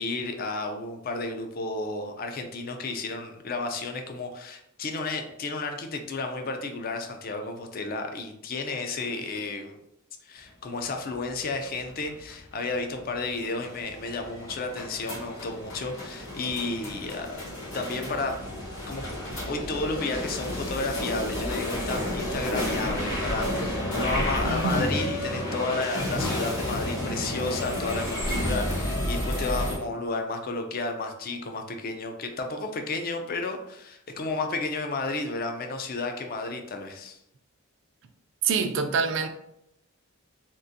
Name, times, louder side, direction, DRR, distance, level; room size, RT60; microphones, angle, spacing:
voice 1, 0.0-9.8 10.2-18.4 18.9-19.1 19.5-37.2, left 3 dB, 40° left, 5 dB, 0.4 m, -32 dB
sound 1, 11.2-29.8, left 1 dB, 60° left, 1.1 m, -31 dB
voice 2, 24.4-24.8 38.4-39.3, right 5 dB, 55° right, 7 dB, 0.4 m, -25 dB
3.7 x 2.5 x 2.6 m, 0.77 s
head